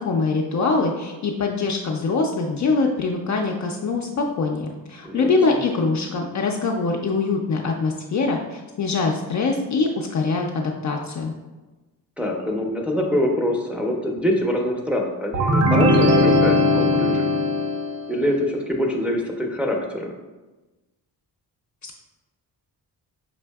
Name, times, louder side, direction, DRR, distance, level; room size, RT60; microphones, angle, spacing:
voice 1, 0.0-11.3 21.8-22.0, left 3 dB, 45° left, 1 dB, 0.4 m, -23 dB
voice 2, 5.0-5.6 12.2-17.3 18.1-20.1, left 1 dB, 5° right, -1 dB, 0.6 m, -24 dB
sound 1, 15.3-18.1, left 1 dB, 40° right, 0.7 m, -19 dB
5.4 x 2.5 x 2.3 m, 1.1 s
cardioid pair, 70°, 43 cm